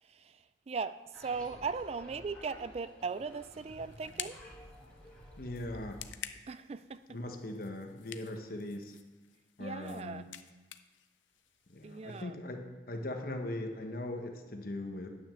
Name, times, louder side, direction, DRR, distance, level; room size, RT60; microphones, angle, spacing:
voice 1, 0.0-4.4 6.5-7.2 9.6-10.3 11.8-12.4, right 5 dB, 35° right, 14 dB, 0.3 m, -39 dB
sound 1, 1.1-6.2, equal, 5° left, 1.9 m, -53 dB
sound 2, 3.0-12.2, left 11 dB, 80° left, 0.5 m, -50 dB
voice 2, 5.4-6.0 7.1-9.0 9.6-10.2 11.7-12.6 12.9-15.1, left 1 dB, 50° left, 4 dB, 1.1 m, -40 dB
9.5 x 6.1 x 6.9 m, 1.2 s
head